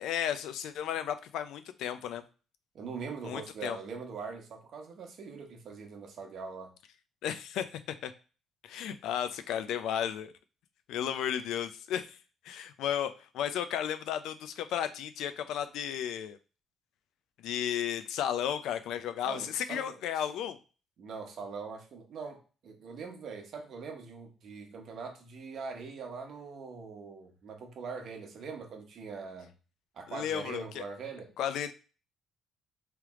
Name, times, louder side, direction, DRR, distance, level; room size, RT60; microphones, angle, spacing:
voice 1, 0.0-2.2 3.2-3.8 7.2-7.6 8.0-8.1 8.6-10.3 10.9-12.2 12.4-16.4 17.4-20.6 30.1-30.8 31.4-31.7, left 9 dB, 80° left, 10 dB, 0.4 m, -34 dB
voice 2, 2.7-6.7 19.2-20.0 21.0-29.5 29.9-31.3, right 5 dB, 55° right, 3 dB, 1.1 m, -42 dB
3.4 x 3.0 x 3.6 m, 0.35 s
cardioid pair, 110°, 0 cm